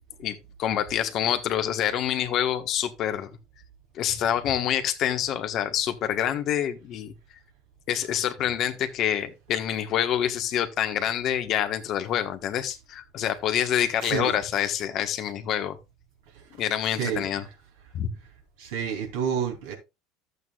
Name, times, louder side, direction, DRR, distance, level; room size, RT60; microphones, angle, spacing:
voice 1, 0.2-3.3 3.9-7.1 7.9-15.8 16.6-17.4 17.9-18.1, left 10 dB, 55° left, 1.4 m, -27 dB
voice 2, 14.0-14.3 16.3-16.4 17.0-17.3 18.6-19.7, right 8 dB, 75° right, 3.2 m, -29 dB
12.5 x 8.2 x 2.4 m
hypercardioid pair, 80°, 0 cm